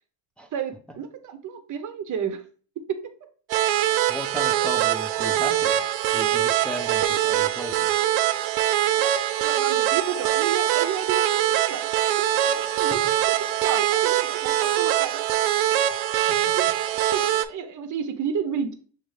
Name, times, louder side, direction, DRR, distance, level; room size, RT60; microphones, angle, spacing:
voice 1, 0.5-2.4 5.1-5.2 9.0-15.3 16.5-16.7 17.1-18.7, right 7 dB, 40° right, 9 dB, 0.8 m, -32 dB
sound 1, 3.5-17.5, right 12 dB, 70° right, 0.5 m, -23 dB
voice 2, 4.1-5.8 6.1-7.9 12.6-13.0 15.9-16.0 16.3-16.4, right 1 dB, ahead, 2 dB, 0.5 m, -35 dB
6.2 x 2.6 x 3.2 m, 0.42 s
cardioid pair, 105°, 49 cm